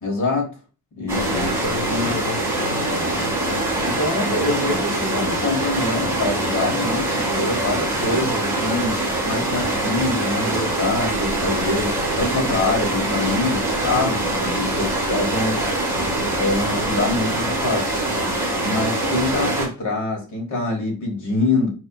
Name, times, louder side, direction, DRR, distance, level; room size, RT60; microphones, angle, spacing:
voice 1, 0.0-0.5 1.0-2.2 3.9-15.6 16.1-17.8 18.6-21.7, left 2 dB, 50° left, 1.3 m, -25 dB
voice 2, 1.1-3.4, left 4 dB, 90° left, 0.8 m, -32 dB
sound 1, 1.1-19.7, right 1 dB, 5° right, 1.3 m, -23 dB
4.2 x 2.7 x 2.2 m
wide cardioid pair, 180°, 38 cm